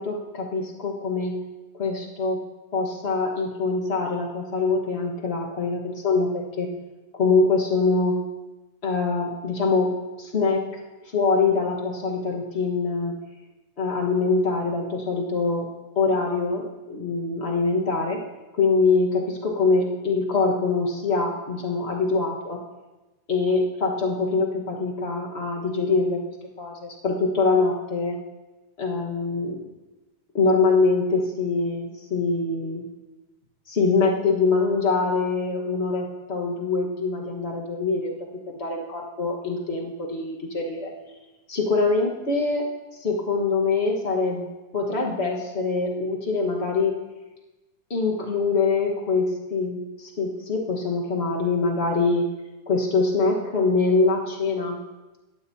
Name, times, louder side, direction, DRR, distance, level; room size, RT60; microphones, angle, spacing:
voice 1, 0.0-1.3 1.7-2.4 2.7-6.7 7.1-8.2 8.8-10.7 11.0-13.2 13.8-18.2 18.5-22.6 23.3-26.2 26.6-28.2 28.8-29.6 30.3-32.9 33.7-38.1 38.5-40.9 41.5-42.7 43.0-44.5 44.7-47.0 47.9-52.3 52.7-54.8, left 4 dB, 40° left, -1 dB, 0.9 m, -24 dB
18.0 x 12.0 x 2.8 m, 1.1 s
omnidirectional pair, 3.5 m